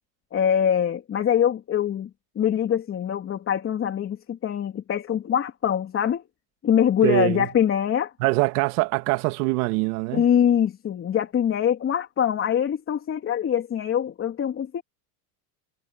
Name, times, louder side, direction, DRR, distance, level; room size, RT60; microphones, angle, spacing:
voice 1, 0.3-2.1 2.4-6.2 6.6-8.1 10.1-14.8, left 9 dB, 30° left, 3.4 m, -23 dB
voice 2, 7.0-7.5 8.2-10.2, right 22 dB, 75° right, 2.2 m, -23 dB
cardioid pair, 155°, 45 cm